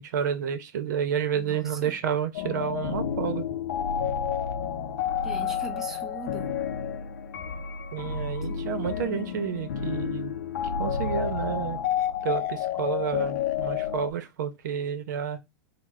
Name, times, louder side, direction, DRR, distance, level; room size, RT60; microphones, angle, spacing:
voice 1, 0.0-3.4 7.9-10.3 10.8-11.8 12.2-15.4, right 8 dB, 85° right, 0.7 m, -30 dB
voice 2, 1.3-1.9 5.2-6.5 8.5-8.6, right 3 dB, 5° right, 0.4 m, -41 dB
sound 1, 2.3-14.1, left 8 dB, 75° left, 0.5 m, -30 dB
3.1 x 2.1 x 3.5 m
supercardioid pair, 175°, 9 cm